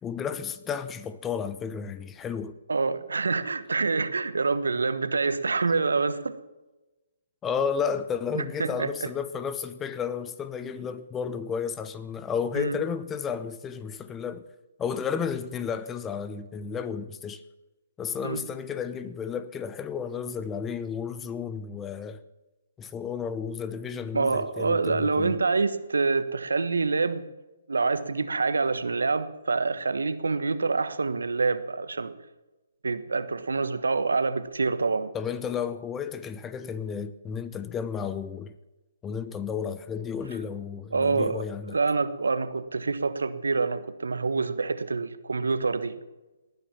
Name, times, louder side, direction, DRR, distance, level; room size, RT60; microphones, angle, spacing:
voice 1, 0.0-2.5 7.4-14.5 14.8-17.4 18.0-22.2 22.8-25.4 35.1-38.5 39.0-41.8, left 6 dB, 15° left, 0.8 m, -32 dB
voice 2, 2.7-6.3 8.3-9.1 12.5-12.8 18.2-18.4 24.1-27.2 27.7-32.1 32.8-35.1 40.9-46.0, right 4 dB, 80° right, 1.2 m, -26 dB
19.0 x 9.7 x 7.1 m
figure-of-eight pair, 135°, 0 cm